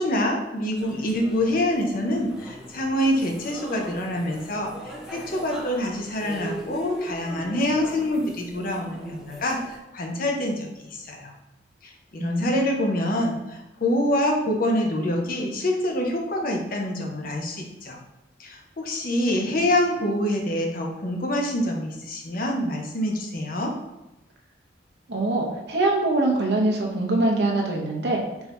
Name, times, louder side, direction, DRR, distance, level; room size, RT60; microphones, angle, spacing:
voice 1, 0.0-11.3 11.8-18.0 18.4-23.7, left 1 dB, 50° left, 1 dB, 0.7 m, -26 dB
sound 1, 0.8-9.8, right 1 dB, 5° right, 0.5 m, -40 dB
voice 2, 12.2-12.7 25.1-28.2, right 2 dB, 60° right, 0 dB, 0.8 m, -23 dB
4.4 x 2.7 x 3.3 m, 0.94 s
head